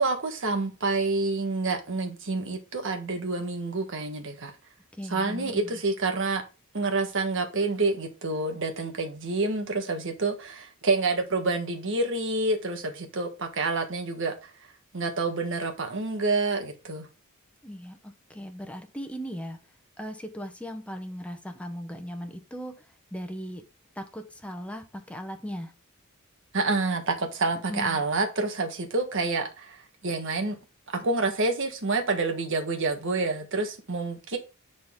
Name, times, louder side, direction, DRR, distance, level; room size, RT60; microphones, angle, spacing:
voice 1, 0.0-4.5 5.1-6.4 6.7-14.5 14.9-17.1 26.5-30.6 30.9-34.4, right 3 dB, 60° right, 1.5 m, -28 dB
voice 2, 5.0-5.7 17.6-19.6 20.0-22.7 23.1-23.6 24.0-25.7 27.7-28.0, equal, 5° left, 1.0 m, -38 dB
9.4 x 4.1 x 3.7 m
head